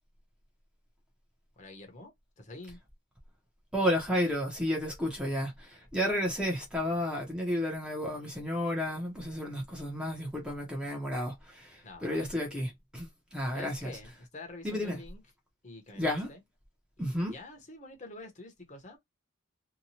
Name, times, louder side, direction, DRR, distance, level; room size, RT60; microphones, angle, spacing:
voice 1, 1.6-2.8 11.8-12.6 13.5-15.2 15.6-16.4 17.1-19.0, left 2 dB, 35° left, 0.9 m, -47 dB
voice 2, 3.7-14.0 14.6-15.0 16.0-16.3 17.0-17.3, equal, 5° right, 0.7 m, -32 dB
2.8 x 2.2 x 2.8 m
head